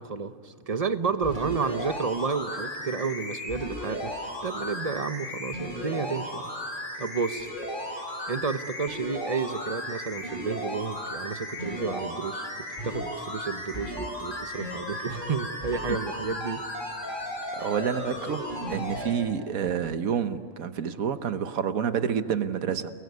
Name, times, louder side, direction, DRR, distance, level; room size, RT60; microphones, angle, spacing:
voice 1, 0.0-6.4 7.0-7.5 7.9-8.0 8.3-12.5 12.8-16.6, right 5 dB, 35° right, 11 dB, 0.8 m, -31 dB
sound 1, 1.2-19.1 19.7-19.8, equal, 35° left, 7.9 m, -35 dB
voice 2, 17.5-18.4 18.7-22.9, right 7 dB, 80° right, 11 dB, 1.5 m, -28 dB
29.5 x 21.0 x 9.5 m, 2.4 s
omnidirectional pair, 1.4 m